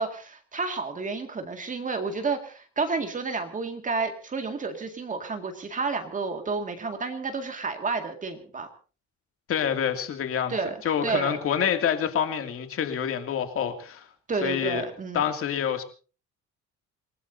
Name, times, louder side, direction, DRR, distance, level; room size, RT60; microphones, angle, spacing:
voice 1, 0.0-8.7 10.5-11.4 14.3-15.2, right 4 dB, 25° right, 6 dB, 2.0 m, -30 dB
voice 2, 9.5-10.5 10.8-14.1 14.4-14.9 15.1-15.8, left 8 dB, 45° left, 7 dB, 2.4 m, -27 dB
28.0 x 18.5 x 2.7 m, 0.36 s
cardioid pair, 155°, 30 cm